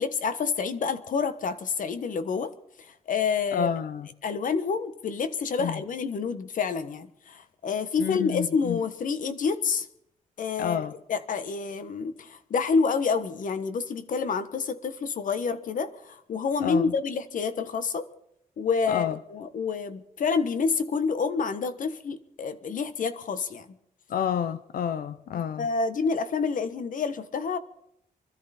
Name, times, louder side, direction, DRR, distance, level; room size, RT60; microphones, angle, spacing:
voice 1, 0.0-2.5 3.1-3.7 4.2-9.9 10.4-18.1 18.6-23.6 25.6-27.6, left 5 dB, 65° left, 1.3 m, -28 dB
voice 2, 3.5-4.1 5.6-5.8 8.0-8.8 10.6-10.9 16.6-16.9 18.9-19.2 24.1-25.7, left 8 dB, 80° left, 0.7 m, -29 dB
25.0 x 13.5 x 4.3 m
wide cardioid pair, 165°, 15 cm